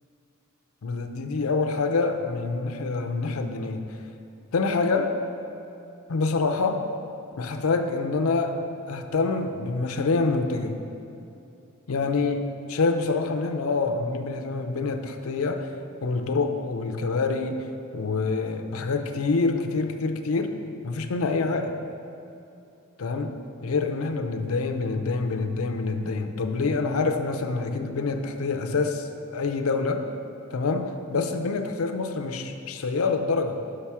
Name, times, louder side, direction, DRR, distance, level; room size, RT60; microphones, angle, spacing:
voice 1, 0.8-3.9 4.5-5.2 6.1-6.8 7.4-8.6 8.9-10.8 11.9-15.7 16.0-17.6 17.9-20.6 20.8-21.8 23.0-30.1 30.5-33.6, left 3 dB, 85° left, 7 dB, 0.5 m, -26 dB
6.3 x 5.7 x 4.7 m, 2.7 s
head